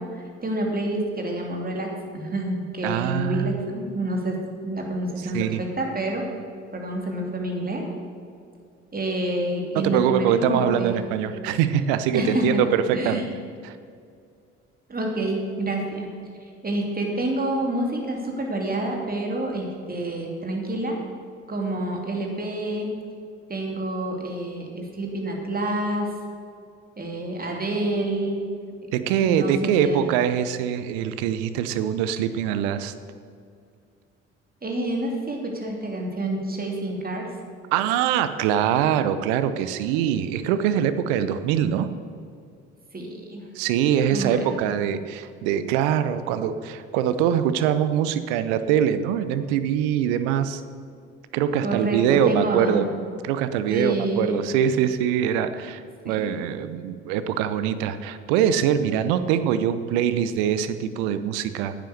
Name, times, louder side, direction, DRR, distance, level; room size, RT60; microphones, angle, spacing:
voice 1, 0.0-4.4 4.6-6.3 6.7-7.9 8.9-11.0 12.1-12.6 12.9-13.3 14.9-16.1 16.6-21.0 21.5-22.9 23.5-26.1 27.0-28.5 29.1-30.0 34.6-37.3 42.9-43.4 44.1-44.5 51.6-52.8 53.7-54.4 56.0-56.3, right 1 dB, 25° right, 0 dB, 3.0 m, -28 dB
voice 2, 2.8-3.6 5.3-5.6 9.7-13.3 13.6-13.8 28.9-32.9 37.7-41.9 43.5-50.6 51.3-52.9 53.2-61.7, right 9 dB, 70° right, 12 dB, 0.8 m, -23 dB
10.0 x 9.1 x 6.7 m, 2.3 s
hypercardioid pair, 55°, 35 cm